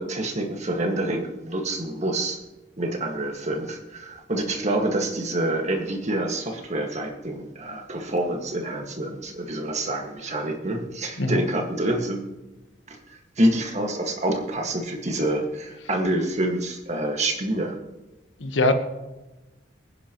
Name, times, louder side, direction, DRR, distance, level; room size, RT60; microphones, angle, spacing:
voice 1, 0.0-2.4 2.8-12.2 12.9-17.8, right 1 dB, 40° right, 3 dB, 1.8 m, -27 dB
voice 2, 18.4-18.7, left 2 dB, 85° left, 7 dB, 1.2 m, -21 dB
24.5 x 10.0 x 3.1 m, 1.1 s
head